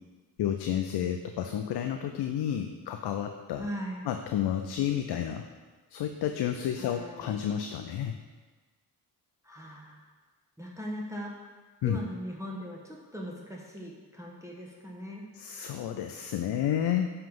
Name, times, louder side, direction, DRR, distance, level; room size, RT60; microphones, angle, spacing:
voice 1, 0.4-3.7 4.0-5.4 5.9-8.2 11.8-12.0 15.3-17.1, left 10 dB, 55° left, 6 dB, 0.6 m, -31 dB
voice 2, 3.6-4.0 6.8-7.4 9.4-10.0 10.6-11.3 11.8-15.3, equal, 5° right, -3 dB, 1.2 m, -39 dB
7.5 x 3.5 x 5.4 m, 1.4 s
hypercardioid pair, 45°, 48 cm